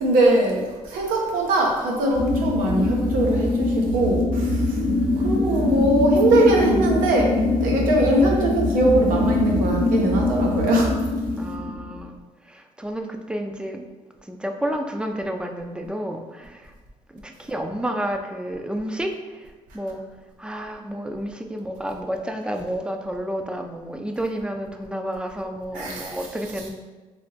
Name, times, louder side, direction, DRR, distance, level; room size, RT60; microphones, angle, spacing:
voice 1, 0.0-4.8 5.2-10.9 25.7-26.2, right 1 dB, 90° right, -1 dB, 0.7 m, -21 dB
sound 1, 2.1-12.0, left 2 dB, 80° left, 0.6 m, -23 dB
voice 2, 4.8-6.0 11.4-12.2 12.5-13.9 14.3-16.7 17.1-20.0 20.4-26.7, equal, 5° right, 4 dB, 0.3 m, -31 dB
3.2 x 2.8 x 2.7 m, 1.2 s
cardioid pair, 85°, 14 cm